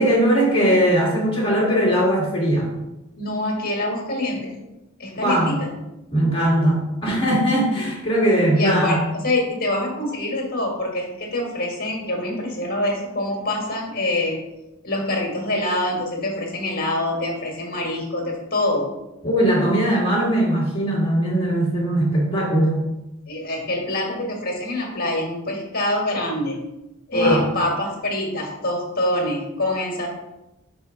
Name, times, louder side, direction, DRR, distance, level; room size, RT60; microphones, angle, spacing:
voice 1, 0.0-2.7 5.2-5.6 6.1-9.0 19.2-22.8 27.1-27.5, right 1 dB, 25° left, -5 dB, 1.7 m, -20 dB
voice 2, 3.2-4.6 5.0-5.7 8.6-14.4 14.8-18.9 23.3-26.6 27.1-30.1, left 1 dB, 45° left, 0 dB, 1.7 m, -25 dB
6.6 x 3.5 x 4.9 m, 0.95 s
head